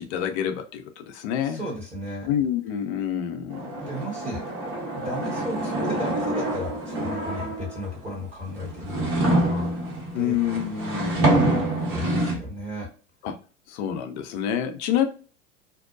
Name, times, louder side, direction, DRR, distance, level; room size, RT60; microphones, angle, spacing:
voice 1, 0.0-1.6 2.3-3.7 10.1-11.6 13.2-13.4 13.7-15.0, left 9 dB, 55° left, 6 dB, 0.6 m, -27 dB
voice 2, 1.4-2.3 3.8-4.4 4.9-9.7 10.1-10.4 11.3-11.6 11.9-12.9, left 1 dB, 15° right, -3 dB, 1.1 m, -34 dB
sound 1, 3.5-7.9 8.5-12.4, right 1 dB, 35° right, 1.4 m, -26 dB
2.6 x 2.1 x 2.4 m, 0.38 s
hypercardioid pair, 80°, 39 cm